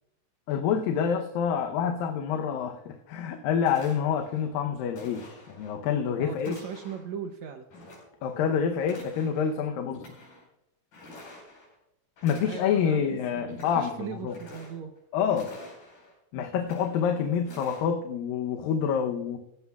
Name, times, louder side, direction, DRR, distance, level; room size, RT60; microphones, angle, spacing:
voice 1, 0.5-6.6 8.2-10.1 12.2-14.4 15.1-15.5 16.3-19.4, left 7 dB, 85° left, 4 dB, 2.6 m, -27 dB
sound 1, 3.6-4.4 4.9-5.8 6.4-7.1 7.7-8.5 8.8-9.5 9.9-10.4 10.9-11.7 12.2-13.0 13.4-13.9 14.2-15.0 15.3-16.1 16.6-17.1 17.4-17.8, left 1 dB, 70° left, 6.4 m, -48 dB
voice 2, 6.2-7.7 12.4-14.9, right 8 dB, 75° right, 5 dB, 1.7 m, -39 dB
17.0 x 15.0 x 2.4 m, 0.81 s
omnidirectional pair, 4.0 m